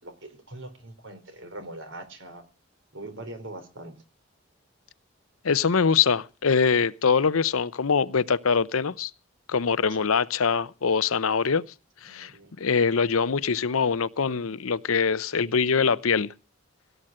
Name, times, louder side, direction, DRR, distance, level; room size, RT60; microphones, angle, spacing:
voice 1, 0.0-2.4 2.9-4.0 10.0-10.1 12.0-12.5, right 1 dB, 65° right, 3.9 m, -42 dB
voice 2, 5.4-9.1 9.5-11.6 12.0-12.3 12.6-16.3, left 5 dB, 90° left, 0.7 m, -23 dB
17.5 x 8.0 x 7.5 m
head